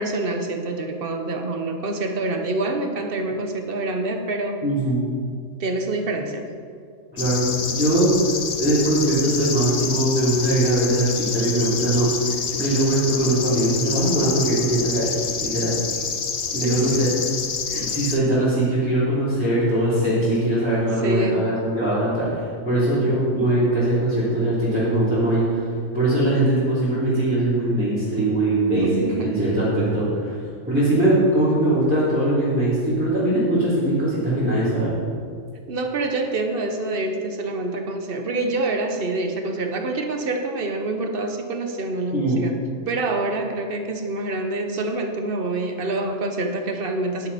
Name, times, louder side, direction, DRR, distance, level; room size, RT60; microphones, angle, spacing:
voice 1, 0.0-4.6 5.6-6.5 16.6-16.9 17.7-17.9 21.0-21.5 28.8-29.3 35.7-42.5 42.9-47.3, right 2 dB, 45° right, 4 dB, 1.2 m, -26 dB
voice 2, 4.6-5.1 7.1-8.1 8.6-15.0 15.4-15.7 16.5-17.1 17.7-25.6 25.9-28.9 29.2-30.4 30.6-34.9 42.1-42.4, right 1 dB, 5° right, -13 dB, 3.3 m, -21 dB
sound 1, 7.2-18.2, left 6 dB, 45° left, 0.5 m, -28 dB
11.0 x 10.5 x 4.2 m, 2.2 s
omnidirectional pair, 1.4 m